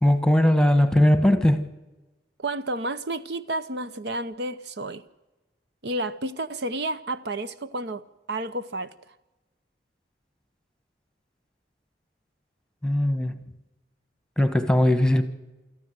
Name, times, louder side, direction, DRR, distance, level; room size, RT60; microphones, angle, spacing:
voice 1, 0.0-1.6 12.8-13.3 14.4-15.3, left 1 dB, 5° left, 1.2 m, -19 dB
voice 2, 2.4-5.0 5.8-8.9, right 2 dB, 60° right, 0.8 m, -31 dB
25.0 x 14.0 x 8.0 m
head